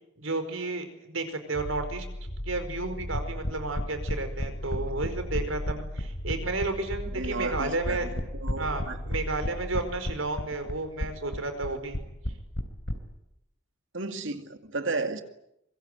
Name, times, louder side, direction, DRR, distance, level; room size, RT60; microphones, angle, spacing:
voice 1, 0.2-2.0 2.4-8.1 8.6-12.0, right 2 dB, 85° right, 8 dB, 5.0 m, -32 dB
sound 1, 1.5-10.6, left 1 dB, 55° left, 6.5 m, -38 dB
sound 2, 3.1-13.0, equal, 75° left, 3.6 m, -31 dB
voice 2, 7.1-8.0 8.4-9.2 13.9-15.2, right 3 dB, 65° right, 7 dB, 2.4 m, -33 dB
24.5 x 23.0 x 9.2 m, 0.85 s
head